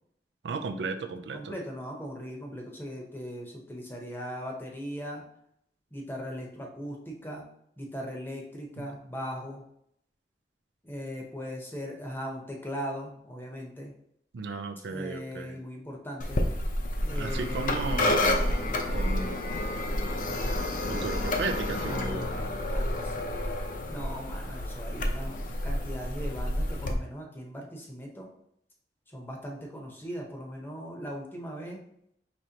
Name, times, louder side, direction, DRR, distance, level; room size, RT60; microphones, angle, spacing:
voice 1, 0.4-1.6 8.8-8.9 14.3-15.6 17.1-19.7 20.9-22.4, right 3 dB, 80° right, 7 dB, 0.4 m, -35 dB
voice 2, 1.3-5.2 5.9-7.4 7.8-9.6 10.8-13.9 14.9-16.4 17.0-18.0 21.9-22.4 22.7-23.3 23.9-28.3 29.1-31.8, equal, 10° left, 0 dB, 0.8 m, -39 dB
sound 1, 16.2-26.9, left 1 dB, 50° left, 0.6 m, -29 dB
5.1 x 3.2 x 2.8 m, 0.73 s
head